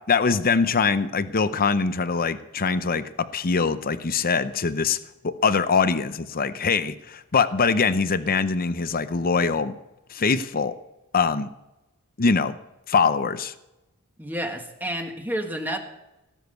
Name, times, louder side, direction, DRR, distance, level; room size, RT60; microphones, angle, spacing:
voice 1, 0.1-5.0 5.2-9.7 10.1-10.8 11.1-11.5 12.2-12.5 12.9-13.5, left 5 dB, 40° left, 12 dB, 0.6 m, -23 dB
voice 2, 14.2-15.8, right 1 dB, 10° right, 3 dB, 1.7 m, -30 dB
17.5 x 7.4 x 8.1 m, 0.94 s
head